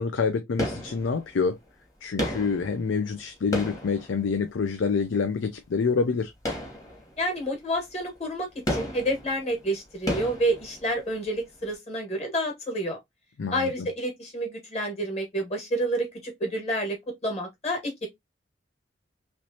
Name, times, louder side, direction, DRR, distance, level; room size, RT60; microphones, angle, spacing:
voice 1, 0.0-1.6 2.0-6.3 13.4-13.9, left 5 dB, 90° left, 0.4 m, -27 dB
sound 1, 0.6-1.5 2.2-4.8 6.4-7.4 7.7-7.9 8.7-11.2 11.5-11.6, equal, 20° left, 1.1 m, -33 dB
voice 2, 7.2-13.0 13.5-17.0 17.2-18.1, right 1 dB, 35° left, 1.4 m, -29 dB
3.1 x 3.0 x 2.7 m
head